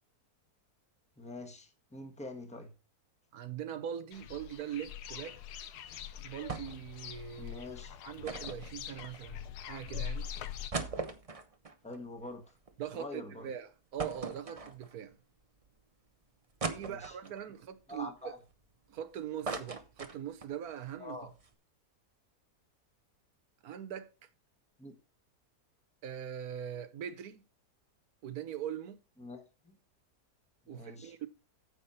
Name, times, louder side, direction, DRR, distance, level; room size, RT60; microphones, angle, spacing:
voice 1, 1.2-2.7 7.4-8.0 11.8-12.6 12.9-13.5 16.7-17.2 17.9-18.4 21.0-21.3 24.8-24.9 29.2-29.8 30.7-31.1, left 2 dB, 5° left, 1.3 m, -45 dB
voice 2, 3.3-5.4 6.2-7.6 8.0-10.3 12.8-15.2 16.7-18.4 18.9-21.2 23.6-24.1 26.0-27.4 28.2-29.0 30.7-31.3, right 9 dB, 70° right, 1.4 m, -41 dB
sound 1, 4.1-10.7, left 9 dB, 85° left, 1.3 m, -43 dB
sound 2, 6.5-6.9 7.2-7.3 8.2-9.5 10.0-10.1 10.5-12.9 13.3-13.4 14.0-15.1 15.6-15.7 16.6-17.4 18.0-19.0 19.2-20.6 20.9-21.0 21.3-21.5, right 4 dB, 30° right, 0.8 m, -40 dB
9.5 x 7.2 x 4.3 m
omnidirectional pair, 1.7 m